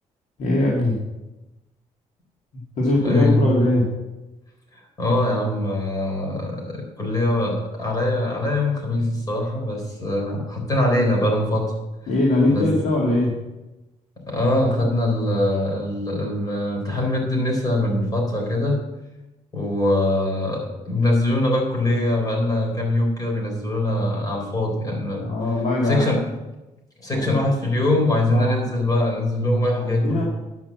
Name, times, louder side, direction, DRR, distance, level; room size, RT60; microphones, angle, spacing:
voice 1, 0.4-1.0 2.8-3.9 12.1-13.3 25.2-26.1 27.1-27.4 28.3-28.7 29.8-30.2, left 2 dB, 65° left, -4 dB, 2.4 m, -21 dB
voice 2, 3.0-3.5 5.0-11.7 12.5-12.7 14.3-18.8 19.5-25.2 25.9-26.2 27.0-30.2, left 1 dB, 30° left, 0 dB, 4.1 m, -22 dB
11.0 x 6.0 x 7.4 m, 1.0 s
cardioid pair, 105°, 13 cm